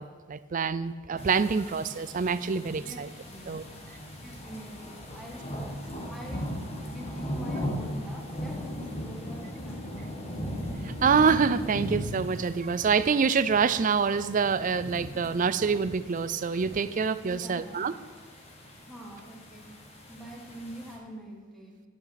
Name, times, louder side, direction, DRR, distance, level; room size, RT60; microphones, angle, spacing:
voice 1, 0.0-3.1 3.5-3.6 10.8-17.9, right 5 dB, 35° right, 14 dB, 0.4 m, -26 dB
sound 1, 1.2-21.0, equal, 30° left, 1.4 m, -38 dB
voice 2, 2.8-3.8 4.2-5.5 6.1-10.3 17.2-17.9 18.8-19.7 20.1-21.8, right 1 dB, ahead, -2 dB, 1.8 m, -45 dB
10.5 x 8.8 x 5.8 m, 1.4 s
head